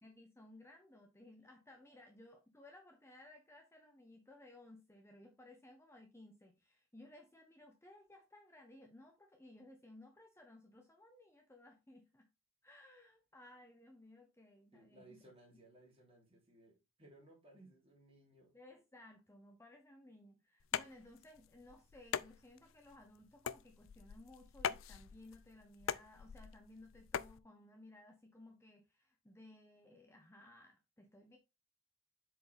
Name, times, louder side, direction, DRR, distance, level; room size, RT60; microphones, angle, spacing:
voice 1, 0.0-12.3 12.6-15.2 18.5-31.4, left 1 dB, 15° left, 1.0 m, -59 dB
voice 2, 14.7-18.5, right 1 dB, 30° right, 3.4 m, -62 dB
sound 1, 20.6-27.4, left 8 dB, 70° left, 0.4 m, -43 dB
7.8 x 4.9 x 3.5 m
head